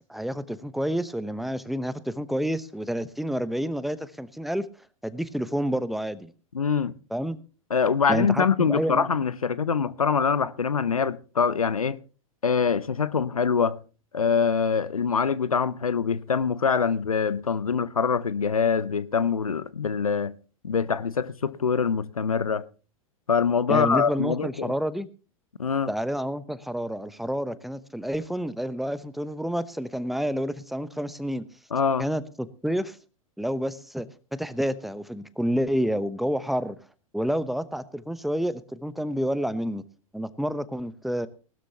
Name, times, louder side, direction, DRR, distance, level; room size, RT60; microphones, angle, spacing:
voice 1, 0.1-4.6 5.0-6.3 7.1-7.4 8.1-9.1 23.7-25.1 25.9-31.4 32.0-33.0 33.4-34.1 34.4-36.8 37.1-39.8 40.1-41.3, equal, ahead, 0.9 m, -29 dB
voice 2, 6.5-6.9 7.7-12.0 12.4-13.8 14.1-20.4 20.6-22.6 23.3-24.7 25.6-25.9 31.7-32.1, left 6 dB, 90° left, 0.6 m, -24 dB
19.5 x 12.5 x 2.9 m
figure-of-eight pair, 100°, 18 cm